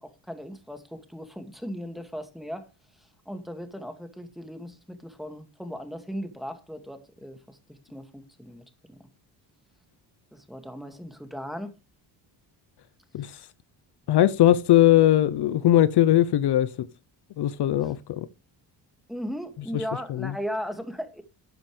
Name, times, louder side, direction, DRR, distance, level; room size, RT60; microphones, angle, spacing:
voice 1, 0.0-2.7 3.3-9.0 10.3-11.7 19.1-21.2, equal, ahead, 2.2 m, -37 dB
voice 2, 14.1-16.9 17.4-18.3 19.7-19.8 20.1-20.3, left 12 dB, 60° left, 0.8 m, -20 dB
12.5 x 8.9 x 3.3 m
cardioid pair, 100°, 46 cm